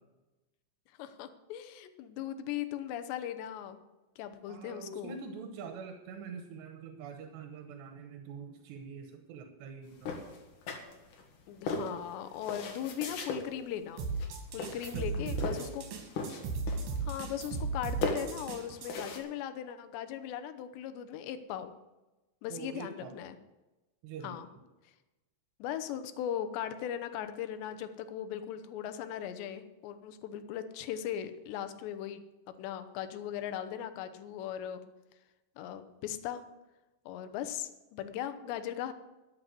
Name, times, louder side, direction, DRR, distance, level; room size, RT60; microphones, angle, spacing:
voice 1, 1.0-3.8 4.2-5.2 11.5-14.1 14.5-15.8 17.0-21.7 22.4-23.4 24.2-24.5 25.6-32.2 32.6-34.8 35.6-36.4 37.1-38.9, left 10 dB, 90° left, 10 dB, 3.1 m, -38 dB
voice 2, 4.5-10.1 14.9-15.7 22.5-23.1 24.0-24.4, right 5 dB, 80° right, 5 dB, 3.2 m, -45 dB
sound 1, 10.0-11.2 11.7-13.4 14.1-14.3 14.6-15.8 16.1-17.0 17.3-17.8 18.0-19.2, left 3 dB, 55° left, 3.0 m, -37 dB
sound 2, 14.0-18.9, right 4 dB, 65° right, 3.7 m, -36 dB
13.0 x 7.7 x 7.8 m, 1.1 s
omnidirectional pair, 4.9 m